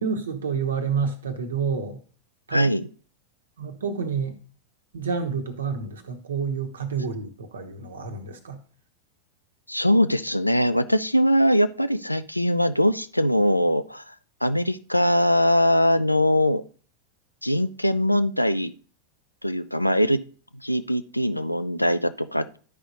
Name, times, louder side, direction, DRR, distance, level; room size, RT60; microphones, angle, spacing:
voice 1, 0.0-2.0 2.5-2.7 3.6-4.4 4.9-8.6, right 5 dB, 70° right, 7 dB, 1.0 m, -29 dB
voice 2, 2.5-2.9 9.7-14.1 14.4-16.6 17.4-18.7 19.4-20.2 20.6-22.6, equal, 90° left, 12 dB, 0.4 m, -22 dB
12.5 x 5.0 x 2.6 m, 0.41 s
figure-of-eight pair, 90°, 0 cm